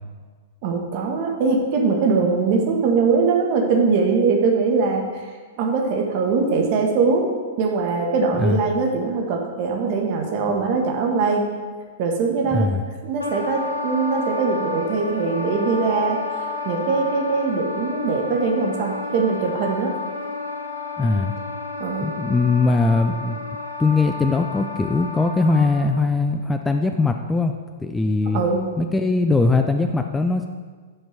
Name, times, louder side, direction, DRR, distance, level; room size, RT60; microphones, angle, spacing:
voice 1, 0.6-5.3 5.6-7.3 7.6-11.5 12.0-12.7 13.0-16.2 16.6-19.9 21.8-22.1 28.3-28.6, right 4 dB, 40° right, 1 dB, 1.3 m, -21 dB
voice 2, 12.5-12.8 21.0-21.4 22.0-23.4 23.8-27.5 27.8-28.4 28.8-30.5, left 3 dB, 10° left, 6 dB, 0.3 m, -20 dB
Wind instrument woodwind instrument, 13.2-26.1, left 3 dB, 90° left, 0.9 m, -31 dB
9.8 x 4.4 x 4.8 m, 1.5 s
figure-of-eight pair, 105°, 0 cm